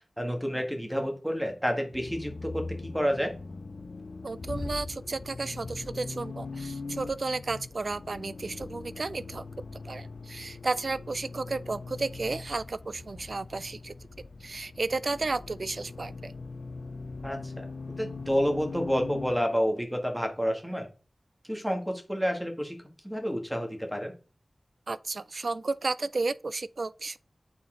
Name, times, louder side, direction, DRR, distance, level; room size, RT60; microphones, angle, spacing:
voice 1, 0.2-3.3 17.2-20.9 21.5-22.8 23.0-24.1, equal, 5° right, 1.7 m, -29 dB
Accelerating revving vroom, 1.9-19.4, left 3 dB, 75° left, 0.6 m, -41 dB
voice 2, 4.2-9.5 9.7-16.3 24.9-27.2, right 3 dB, 65° right, 0.3 m, -33 dB
8.6 x 4.2 x 3.8 m
wide cardioid pair, 75°, 0 cm